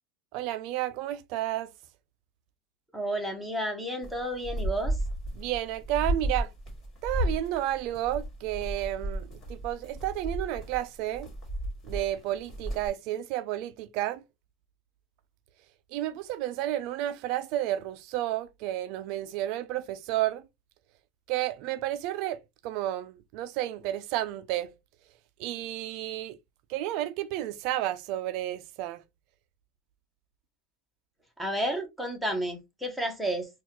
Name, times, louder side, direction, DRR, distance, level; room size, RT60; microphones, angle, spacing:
voice 1, 0.3-1.7 5.4-6.5 7.0-11.3 11.8-14.2 15.9-20.4 21.3-24.7 25.4-26.4 26.7-29.0, right 13 dB, 55° right, 0.4 m, -31 dB
voice 2, 2.9-5.0 31.4-33.5, right 1 dB, ahead, 1.0 m, -31 dB
sound 1, 4.0-12.9, right 1 dB, 25° left, 2.0 m, -33 dB
4.0 x 2.4 x 2.9 m
supercardioid pair, 145°, 0 cm